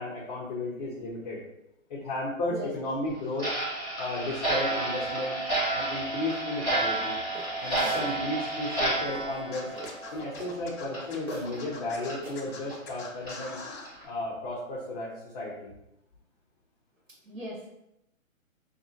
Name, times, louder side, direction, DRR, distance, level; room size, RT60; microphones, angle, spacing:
voice 1, 0.0-1.4 1.9-3.5 4.0-5.4 5.7-7.2 7.6-9.7 10.1-13.6 14.0-15.7, left 1 dB, 30° left, -6 dB, 0.7 m, -34 dB
Clock, 3.4-10.6 10.9-11.0 11.5-11.6 12.1-12.2 12.7-12.8 13.3-13.4 13.8-14.0, right 2 dB, 10° right, 1.0 m, -31 dB
sound 1, 7.4-8.1 8.7-10.5 11.1-11.7 11.9-12.5, right 2 dB, 85° right, 1.4 m, -44 dB
Scratching (performance technique), 9.5-13.9, left 4 dB, 50° left, 1.1 m, -43 dB
voice 2, 10.1-10.4 17.2-17.7, right 1 dB, 70° right, -7 dB, 1.5 m, -39 dB
5.0 x 2.9 x 2.7 m, 0.84 s
hypercardioid pair, 160°, 41 cm